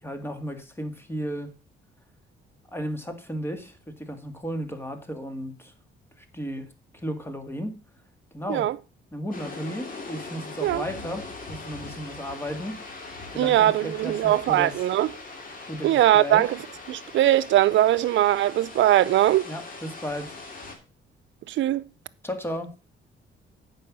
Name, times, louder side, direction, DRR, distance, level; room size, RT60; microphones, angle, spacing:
voice 1, 0.0-1.5 2.7-5.7 6.2-6.7 6.9-7.8 8.3-8.7 9.1-12.8 13.3-14.8 15.7-16.4 19.5-20.4 22.2-22.7, equal, 10° left, 1.9 m, -34 dB
sound 1, 9.3-20.8, left 3 dB, 45° left, 2.5 m, -41 dB
voice 2, 13.4-15.1 15.8-16.6 16.9-19.5 21.5-21.8, right 13 dB, 70° right, 0.6 m, -21 dB
8.7 x 5.8 x 6.1 m
cardioid pair, 90°, 20 cm